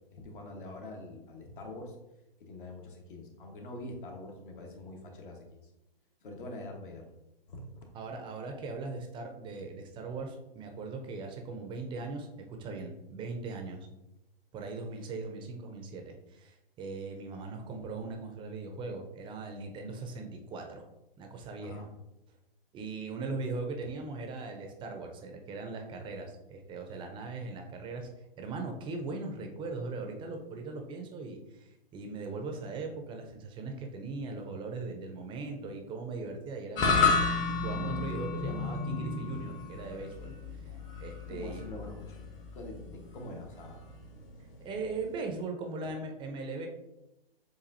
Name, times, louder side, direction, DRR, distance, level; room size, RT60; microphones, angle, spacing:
voice 1, 0.1-1.9 2.4-5.6 6.2-7.1 7.5-7.9 21.6-21.9 41.3-42.2 42.5-43.8, left 2 dB, 60° left, 2 dB, 1.2 m, -44 dB
voice 2, 7.9-13.8 14.5-20.8 21.2-21.9 22.7-28.1 28.4-37.3 37.6-40.3 41.0-41.6 44.6-46.7, right 3 dB, 15° right, 3 dB, 0.6 m, -39 dB
sound 1, 36.8-45.2, left 4 dB, 25° left, 0.8 m, -32 dB
7.0 x 2.6 x 2.6 m, 0.91 s
figure-of-eight pair, 120°, 30 cm